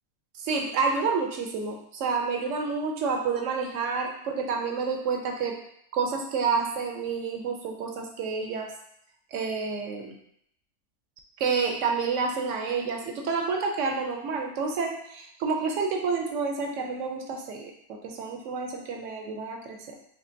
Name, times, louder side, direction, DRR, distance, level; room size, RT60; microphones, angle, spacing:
voice 1, 0.4-5.6 5.9-8.7 9.3-10.2 11.4-19.8, right 5 dB, 70° right, 2 dB, 0.8 m, -29 dB
4.3 x 3.1 x 2.6 m, 0.72 s
omnidirectional pair, 1.6 m